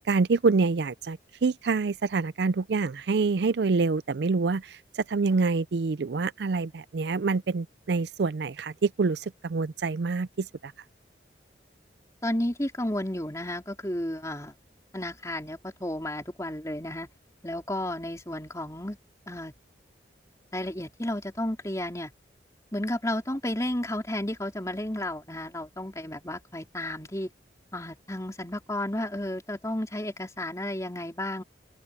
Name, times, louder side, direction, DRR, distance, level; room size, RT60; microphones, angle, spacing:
voice 1, 0.1-10.7, right 4 dB, 65° right, 0.4 m, -26 dB
voice 2, 12.2-14.5 14.9-17.1 17.4-19.0 19.3-19.5 20.5-22.1 22.7-27.3 27.7-31.4, left 1 dB, 15° left, 4.2 m, -32 dB
open air
head